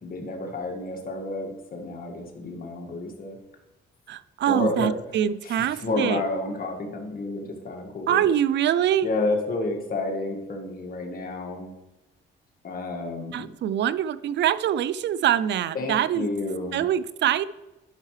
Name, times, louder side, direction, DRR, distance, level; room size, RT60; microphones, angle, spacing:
voice 1, 0.0-3.4 4.5-4.9 5.4-8.2 9.0-11.7 12.6-13.5 15.8-16.8, left 2 dB, 45° left, 2 dB, 1.8 m, -30 dB
voice 2, 4.1-6.2 8.1-9.1 13.3-16.3 16.7-17.4, right 10 dB, 65° right, 16 dB, 0.5 m, -24 dB
11.5 x 5.5 x 3.2 m, 0.99 s
cardioid pair, 90°, 20 cm